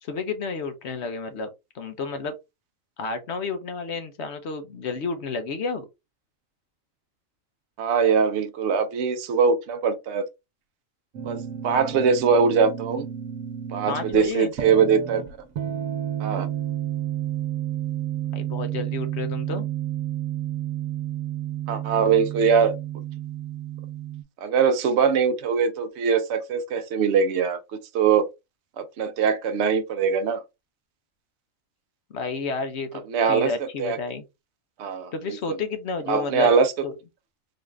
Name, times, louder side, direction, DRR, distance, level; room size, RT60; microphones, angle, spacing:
voice 1, 0.0-1.5 1.7-2.3 3.0-5.9 13.9-14.5 18.3-19.7 32.1-33.0 33.3-34.3 35.1-36.5 36.8-36.9, left 4 dB, 60° left, 0.9 m, -31 dB
voice 2, 7.8-10.2 11.2-13.1 13.7-15.2 16.2-16.5 21.7-22.8 24.4-27.6 27.9-28.2 28.8-30.4 33.1-34.0 34.8-35.6 36.1-36.7, right 6 dB, 65° right, 0.9 m, -22 dB
sound 1, 11.1-24.2, right 11 dB, 85° right, 1.2 m, -31 dB
3.9 x 2.4 x 3.2 m
omnidirectional pair, 1.4 m